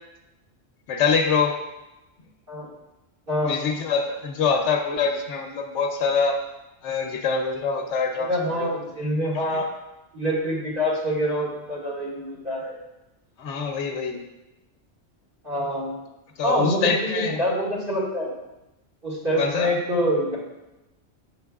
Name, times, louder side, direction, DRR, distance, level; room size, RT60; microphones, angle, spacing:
voice 1, 0.9-1.6 3.4-6.4 6.8-8.8 9.5-9.6 13.4-14.2 16.4-17.4 19.4-19.7, left 5 dB, 85° left, 3 dB, 1.0 m, -24 dB
voice 2, 8.2-9.7 10.1-12.8 15.4-16.0 16.4-18.3 19.0-20.4, equal, 50° right, -6 dB, 2.1 m, -26 dB
6.9 x 6.6 x 2.3 m, 0.98 s
omnidirectional pair, 1.2 m